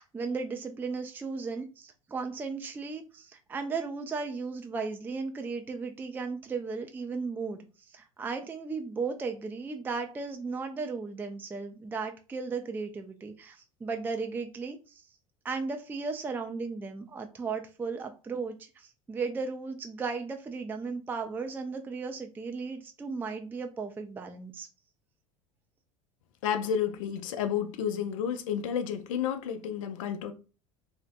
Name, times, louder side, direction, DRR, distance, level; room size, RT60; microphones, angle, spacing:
voice 1, 0.0-7.6 7.9-14.8 15.4-24.7, right 4 dB, 10° right, 0.3 m, -35 dB
voice 2, 26.4-30.3, left 8 dB, 75° left, 0.4 m, -31 dB
2.6 x 2.1 x 2.5 m
hypercardioid pair, 80°, 17 cm